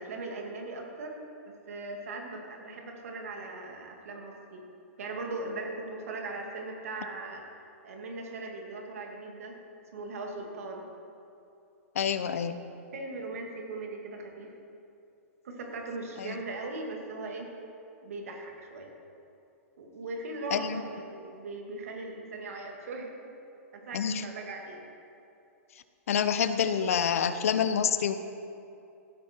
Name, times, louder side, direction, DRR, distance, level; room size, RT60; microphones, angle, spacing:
voice 1, 0.0-4.6 5.0-7.4 7.8-9.6 9.9-10.9 12.9-14.5 15.4-17.5 18.0-18.9 19.8-23.1 23.7-24.8, right 2 dB, 75° right, 1 dB, 2.2 m, -39 dB
voice 2, 11.9-12.6 16.2-16.4 20.5-20.8 23.9-24.2 26.1-28.1, left 7 dB, 75° left, 11 dB, 0.7 m, -27 dB
15.0 x 8.7 x 4.5 m, 2.7 s
hypercardioid pair, 130°, 8 cm